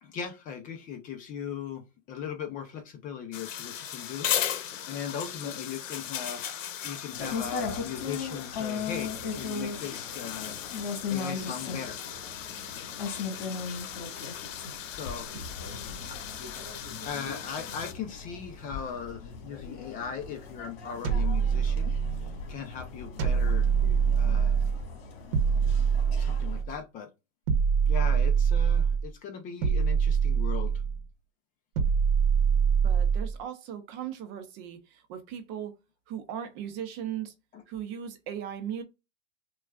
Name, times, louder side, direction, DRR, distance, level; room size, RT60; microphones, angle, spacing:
voice 1, 0.0-6.6 6.8-12.0 14.9-15.3 16.1-16.2 17.0-21.9 22.5-23.7 24.2-24.6 26.2-27.1 27.9-30.7 37.5-37.6, left 7 dB, 20° left, 0.6 m, -39 dB
sound 1, 3.3-17.9, left 9 dB, 85° left, 0.8 m, -37 dB
sound 2, 7.2-26.6, left 5 dB, 50° left, 2.0 m, -38 dB
sound 3, 21.0-22.4 23.2-24.8 25.3-26.7 27.5-29.1 29.6-31.0 31.8-33.4, right 6 dB, 45° right, 1.0 m, -24 dB
voice 2, 32.8-35.8 36.1-37.3 37.7-38.8, right 9 dB, 30° right, 0.7 m, -38 dB
6.0 x 2.4 x 2.4 m
hypercardioid pair, 140°, 37 cm